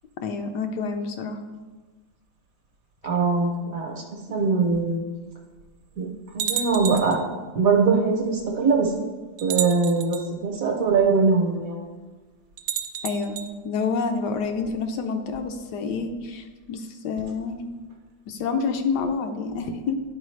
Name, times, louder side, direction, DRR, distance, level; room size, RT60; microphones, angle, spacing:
voice 1, 0.2-1.4 13.0-13.4 13.6-17.6 18.3-20.0, left 5 dB, 75° left, 6 dB, 1.2 m, -28 dB
voice 2, 3.0-4.0 4.3-5.0 6.0-7.2 7.5-8.9 9.4-11.8, right 4 dB, 60° right, 1 dB, 1.1 m, -22 dB
sound 1, 4.7-4.8 5.6-5.7 6.4-7.2 8.4-8.5 9.4-10.3 12.6-13.5, right 10 dB, 80° right, 1.2 m, -30 dB
9.9 x 4.6 x 3.2 m, 1.3 s
omnidirectional pair, 1.9 m